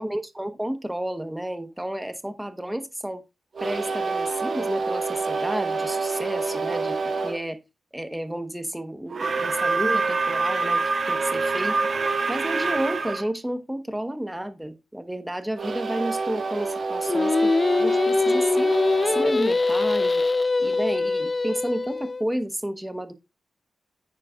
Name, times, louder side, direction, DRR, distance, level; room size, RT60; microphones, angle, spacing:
voice 1, 0.0-3.2 3.6-7.6 7.9-11.8 12.3-17.5 17.8-18.7 19.1-20.2 20.6-23.1, right 1 dB, 10° right, 1.1 m, -31 dB
sound 1, 3.5-7.4 9.1-13.2 15.5-20.4, right 4 dB, 55° right, 2.0 m, -27 dB
Singing, 17.1-22.2, left 3 dB, 35° left, 0.4 m, -23 dB
9.4 x 8.8 x 2.4 m
cardioid pair, 65°, 0 cm